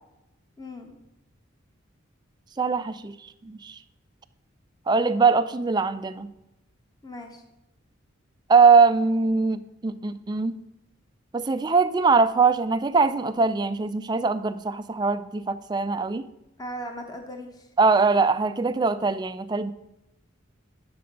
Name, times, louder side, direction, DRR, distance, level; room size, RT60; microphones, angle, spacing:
voice 1, 0.6-1.0 7.0-7.4 16.6-17.7, equal, 20° left, 4 dB, 0.9 m, -38 dB
voice 2, 2.6-3.1 3.4-3.8 4.9-6.3 8.5-10.5 11.3-16.3 17.8-19.7, right 4 dB, 20° right, 11 dB, 0.3 m, -22 dB
9.2 x 6.8 x 5.2 m, 0.92 s
head